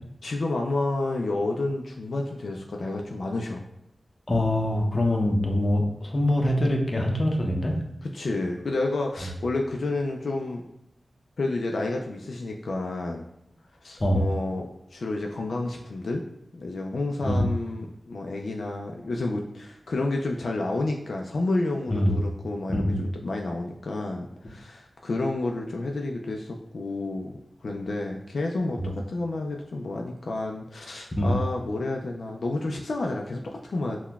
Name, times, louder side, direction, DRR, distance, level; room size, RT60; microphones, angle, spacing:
voice 1, 0.2-3.7 8.0-10.6 11.4-13.3 13.8-16.2 16.5-27.3 27.6-34.0, left 2 dB, 80° left, 1 dB, 0.3 m, -30 dB
voice 2, 4.3-7.7 14.0-14.3 17.2-17.4 21.9-22.1 22.7-23.0 28.8-28.9 31.2-31.3, left 1 dB, 35° left, 1 dB, 0.6 m, -24 dB
5.7 x 2.1 x 2.3 m, 0.80 s
wide cardioid pair, 80°, 0 cm